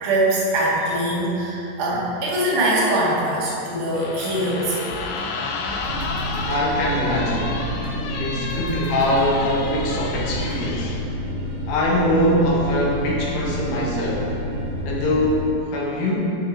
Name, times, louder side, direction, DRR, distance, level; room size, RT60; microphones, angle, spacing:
voice 1, 0.0-5.0, right 1 dB, 80° right, -6 dB, 3.8 m, -22 dB
sound 1, 3.9-11.0, left 4 dB, 85° left, 1.9 m, -32 dB
sound 2, 4.9-10.6, equal, 25° right, 1.1 m, -38 dB
sound 3, 5.9-15.5, equal, 60° right, 2.3 m, -29 dB
voice 2, 6.4-7.6 8.2-11.0 11.7-14.3 14.8-16.4, left 1 dB, 65° left, -3 dB, 2.4 m, -22 dB
10.0 x 4.5 x 5.6 m, 2.8 s
omnidirectional pair, 4.8 m